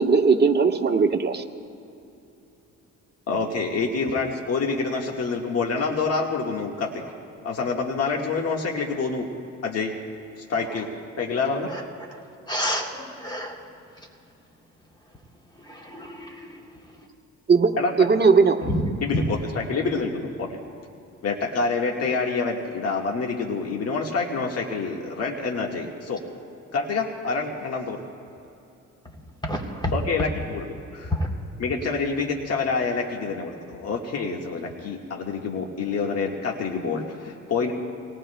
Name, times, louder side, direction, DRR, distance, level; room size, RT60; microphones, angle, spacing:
voice 1, 0.0-1.4 17.5-17.7 18.0-18.6, right 5 dB, 35° right, 4 dB, 1.1 m, -18 dB
voice 2, 3.3-7.1 7.4-9.3 9.6-9.9 10.5-10.9 11.2-11.7 17.8-18.1 19.0-20.6 21.2-26.2 26.7-28.0 29.9-31.1 31.6-37.7, left 4 dB, 55° left, 0 dB, 1.6 m, -27 dB
voice 3, 12.5-13.6 15.7-16.6 18.6-18.9 29.4-29.9 31.1-31.3, left 1 dB, 15° left, 0 dB, 3.2 m, -29 dB
27.5 x 19.0 x 2.2 m, 2.8 s
cardioid pair, 90°, 30 cm